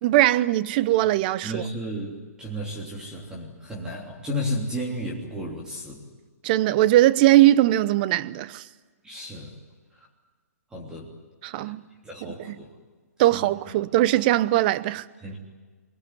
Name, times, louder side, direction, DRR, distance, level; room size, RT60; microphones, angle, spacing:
voice 1, 0.0-1.6 6.4-8.6 11.4-11.8 12.4-12.6 13.2-15.1, right 15 dB, 35° right, 0.8 m, -20 dB
voice 2, 1.4-6.0 9.0-9.5 10.7-11.1 11.6-11.7 12.0-12.7 13.3-13.4 15.2-15.4, equal, 10° right, 3.4 m, -33 dB
25.0 x 21.0 x 9.6 m
hypercardioid pair, 150°, 9 cm